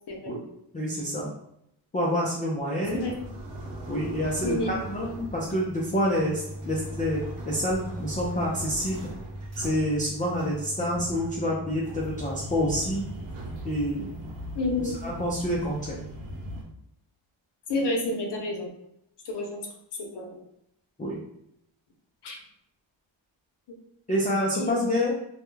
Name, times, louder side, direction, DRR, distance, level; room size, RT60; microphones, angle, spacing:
voice 1, 0.7-1.3 1.9-3.1 3.9-9.0 9.6-13.1 13.6-14.1 15.0-16.0 21.0-21.2 24.1-25.1, equal, 20° left, -5 dB, 0.3 m, -27 dB
sound 1, 2.8-16.6, right 1 dB, 85° right, 0.8 m, -38 dB
voice 2, 14.5-15.0 17.7-18.7 19.2-19.6 20.0-20.4 22.2-22.4 24.5-25.1, left 2 dB, 55° left, 1 dB, 0.7 m, -30 dB
2.3 x 2.1 x 3.1 m, 0.77 s
cardioid pair, 105°, 49 cm